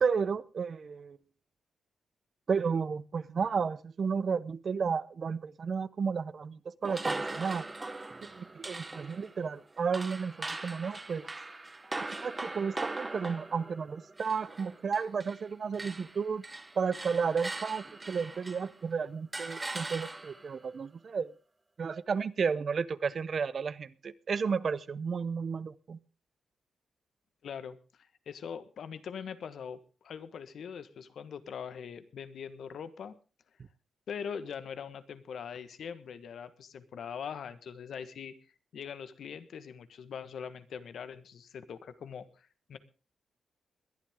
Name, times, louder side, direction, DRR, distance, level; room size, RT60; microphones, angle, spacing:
voice 1, 0.0-1.2 2.5-7.6 8.4-11.2 12.2-16.4 16.8-21.3 21.8-26.0, right 5 dB, 45° right, 17 dB, 0.7 m, -32 dB
sound 1, 6.8-15.5 15.7-18.8 19.3-20.5, right 2 dB, 15° right, 1.0 m, -40 dB
voice 2, 27.4-27.8 28.3-33.1 34.1-38.3 38.7-42.8, left 7 dB, 65° left, 12 dB, 1.3 m, -42 dB
21.0 x 11.5 x 3.6 m, 0.34 s
wide cardioid pair, 155°, 0 cm